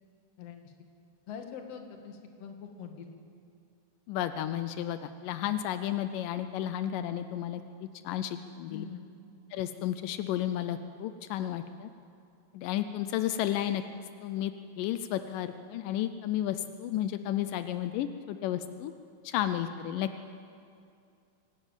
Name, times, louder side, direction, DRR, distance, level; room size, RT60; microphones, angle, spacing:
voice 1, 0.4-0.7 1.3-3.2 8.7-9.1, left 7 dB, 55° left, 4 dB, 2.5 m, -43 dB
voice 2, 4.1-8.9 9.5-11.9 12.5-13.8 14.2-18.9 19.2-20.1, left 11 dB, 85° left, 11 dB, 2.3 m, -32 dB
24.0 x 12.5 x 9.0 m, 2.5 s
omnidirectional pair, 3.8 m